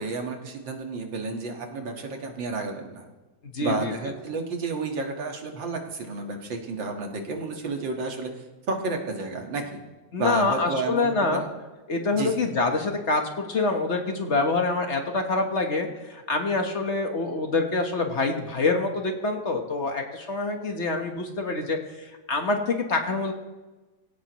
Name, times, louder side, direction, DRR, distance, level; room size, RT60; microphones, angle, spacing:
voice 1, 0.0-3.0 3.6-8.3 8.7-9.8 10.2-11.5 12.1-12.5, right 3 dB, 75° right, 2 dB, 2.5 m, -31 dB
voice 2, 3.5-3.9 10.1-11.4 11.9-23.3, left 3 dB, 40° left, 3 dB, 1.5 m, -26 dB
22.0 x 17.0 x 3.1 m, 1.2 s
omnidirectional pair, 2.0 m